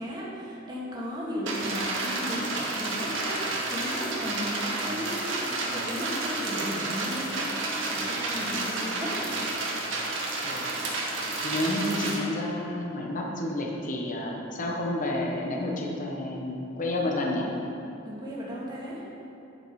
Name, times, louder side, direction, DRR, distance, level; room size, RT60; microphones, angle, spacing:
voice 1, 0.0-7.5 7.8-9.5 18.0-19.1, equal, 20° right, -6 dB, 2.0 m, -35 dB
sound 1, 1.5-12.2, right 2 dB, 70° right, 1.7 m, -31 dB
voice 2, 11.4-17.5, left 1 dB, 40° left, -1 dB, 1.2 m, -30 dB
9.8 x 7.6 x 4.8 m, 2.8 s
head